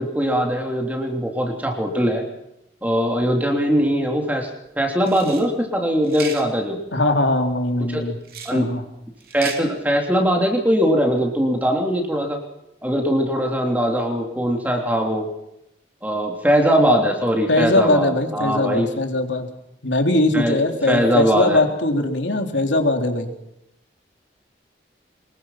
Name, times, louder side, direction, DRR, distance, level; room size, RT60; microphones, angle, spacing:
voice 1, 0.0-2.2 2.8-4.5 4.8-6.8 7.8-8.1 8.4-8.7 9.3-12.4 12.8-15.3 16.0-18.9 20.3-20.6 20.9-21.6, equal, 10° right, 1 dB, 3.3 m, -21 dB
sound 1, 5.0-5.5 6.0-6.4 8.2-8.6 9.2-9.6, right 6 dB, 55° right, 3.0 m, -34 dB
voice 2, 6.9-8.2 8.5-8.8 17.5-19.5 19.8-23.3, left 2 dB, 90° left, 4 dB, 3.5 m, -20 dB
24.5 x 21.5 x 5.9 m, 0.85 s
head